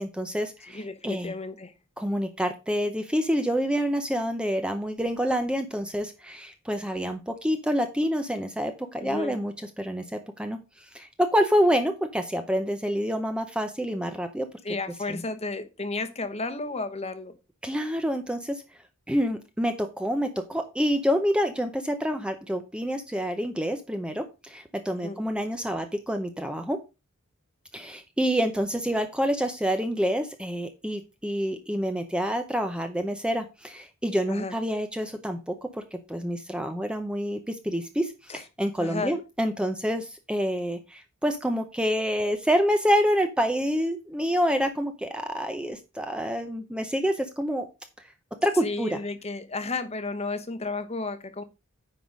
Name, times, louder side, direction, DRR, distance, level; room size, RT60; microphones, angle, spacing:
voice 1, 0.0-1.3 2.0-10.6 10.9-14.5 15.1-15.2 17.6-18.6 19.1-26.8 27.7-47.7 48.4-49.0, equal, 5° right, 7 dB, 0.6 m, -27 dB
voice 2, 0.7-1.7 9.0-9.4 14.6-17.4 24.9-25.2 34.3-34.5 38.3-38.4 38.8-39.1 48.6-51.4, left 3 dB, 30° left, 10 dB, 1.0 m, -33 dB
9.6 x 3.9 x 5.1 m, 0.28 s
head